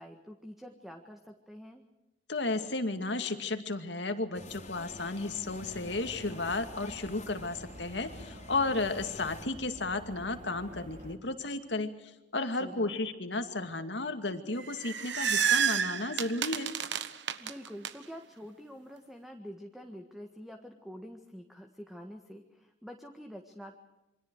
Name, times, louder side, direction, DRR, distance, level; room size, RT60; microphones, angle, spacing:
voice 1, 0.0-1.8 12.5-13.0 17.4-23.8, equal, ahead, 4 dB, 1.6 m, -47 dB
voice 2, 2.3-16.7, left 2 dB, 75° left, 7 dB, 2.4 m, -33 dB
sound 1, 4.3-9.5, left 2 dB, 40° left, 3.3 m, -48 dB
sound 2, 5.4-11.2, right 1 dB, 45° right, 2.7 m, -50 dB
sound 3, 14.6-17.9, right 8 dB, 75° right, 1.2 m, -30 dB
28.0 x 25.0 x 4.8 m, 0.99 s
head